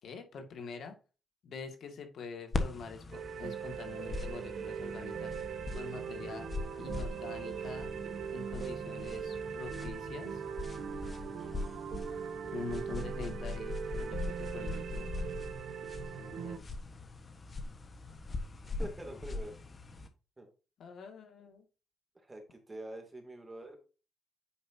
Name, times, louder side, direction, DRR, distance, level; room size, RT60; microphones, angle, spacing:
voice 1, 0.0-1.0 1.4-5.3 5.7-6.5 6.8-7.9 8.3-10.4 12.5-15.1 16.2-16.6 20.8-21.7, left 4 dB, 65° left, 5 dB, 2.0 m, -45 dB
sound 1, 2.5-20.1, left 3 dB, 30° left, 1.3 m, -41 dB
sound 2, 3.1-16.6, right 7 dB, 65° right, 1.1 m, -40 dB
voice 2, 18.8-19.5 20.4-20.5 22.1-23.8, right 1 dB, 20° right, 4 dB, 2.6 m, -45 dB
9.4 x 5.3 x 2.8 m, 0.33 s
cardioid pair, 90°, 0 cm